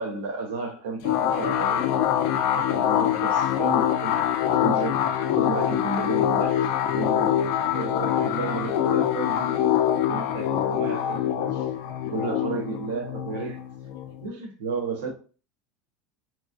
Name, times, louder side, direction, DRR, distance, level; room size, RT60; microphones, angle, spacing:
voice 1, 0.0-1.9 2.4-4.2 4.6-5.0 5.4-7.4 7.7-9.7 10.1-11.7 12.0-13.6 14.2-15.1, right 3 dB, 85° right, 0.8 m, -33 dB
sound 1, 1.0-14.3, left 10 dB, 65° left, 0.3 m, -24 dB
2.9 x 2.3 x 2.4 m
supercardioid pair, 125°, 0 cm